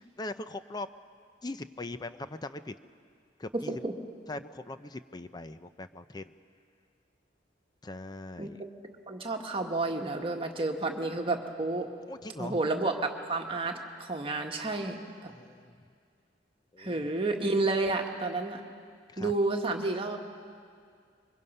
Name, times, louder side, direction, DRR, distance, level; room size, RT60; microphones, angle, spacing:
voice 1, 0.2-0.9 1.4-2.7 3.4-3.8 4.3-6.3 7.8-8.6 12.1-12.6 15.3-15.7 16.7-17.0 19.1-19.3, left 2 dB, 25° left, 11 dB, 0.5 m, -40 dB
voice 2, 3.5-3.9 8.4-8.7 9.1-11.9 12.4-15.3 16.8-18.6 19.2-20.2, right 2 dB, 30° right, 2 dB, 1.6 m, -31 dB
26.5 x 23.5 x 5.5 m, 2.2 s
head